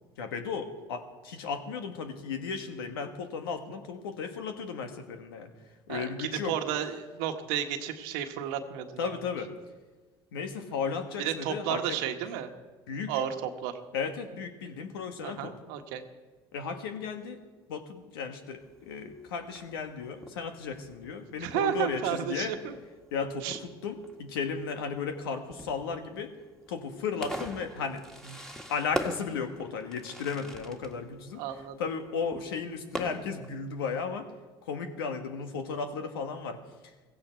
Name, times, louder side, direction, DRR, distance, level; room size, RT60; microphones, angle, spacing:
voice 1, 0.2-5.5 5.9-6.5 9.0-9.5 10.3-12.0 12.9-13.1 13.9-15.5 16.5-17.4 17.7-22.5 23.1-26.3 26.7-28.4 28.7-31.4 31.8-34.3 34.7-36.6, left 5 dB, 90° left, 6 dB, 1.5 m, -35 dB
voice 2, 5.9-9.2 11.2-12.5 13.1-13.7 15.2-16.0 21.4-22.8 23.4-23.6 31.4-31.8, right 10 dB, 80° right, 6 dB, 1.4 m, -32 dB
Fireworks, 18.6-33.6, equal, 5° left, 1.8 m, -43 dB
16.0 x 16.0 x 4.5 m, 1.3 s
hypercardioid pair, 75°, 12 cm